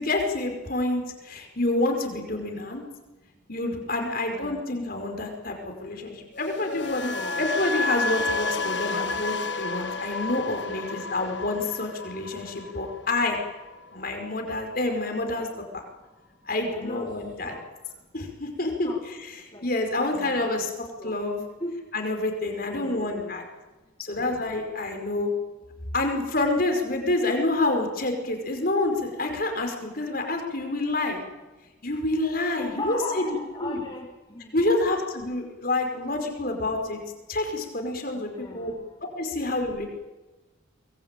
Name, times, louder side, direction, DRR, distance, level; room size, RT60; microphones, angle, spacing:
voice 1, 0.0-2.8 3.5-7.1 7.4-13.4 13.9-15.5 16.4-17.5 18.1-18.9 19.6-20.7 21.0-21.4 21.9-23.4 24.0-25.3 25.9-31.2 31.8-33.2 33.6-33.8 34.5-37.0 37.3-38.7 39.1-39.9, left 2 dB, 45° left, 3 dB, 5.1 m, -28 dB
voice 2, 4.0-4.8 7.1-7.5 10.5-11.5 16.7-17.1 17.4-17.6 18.8-19.0 19.5-20.7 21.0-21.2 21.6-21.8 22.5-23.4 32.5-34.7 38.1-38.8, left 1 dB, 25° left, -2 dB, 3.0 m, -38 dB
sound 1, 6.3-14.4 14.7-15.1, left 3 dB, 65° left, 1.5 m, -31 dB
24.5 x 21.0 x 9.1 m, 1.2 s
head